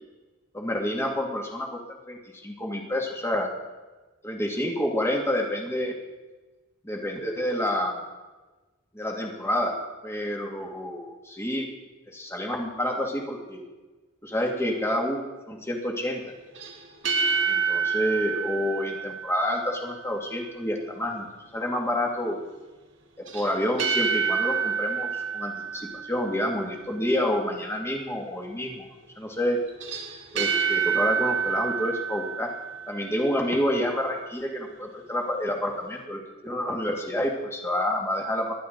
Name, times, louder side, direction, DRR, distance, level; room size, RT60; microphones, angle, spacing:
voice 1, 0.5-3.5 4.2-6.0 6.8-8.0 8.9-9.7 10.0-11.7 12.1-13.6 14.2-15.2 15.5-16.2 17.5-21.3 21.5-22.4 23.2-28.9 29.2-29.6 30.3-32.5 32.9-38.5, left 1 dB, 15° left, 0 dB, 2.4 m, -28 dB
sound 1, 16.6-19.9 23.3-26.6 29.7-33.3, right 6 dB, 70° right, 1.9 m, -28 dB
24.5 x 12.0 x 4.0 m, 1.2 s
head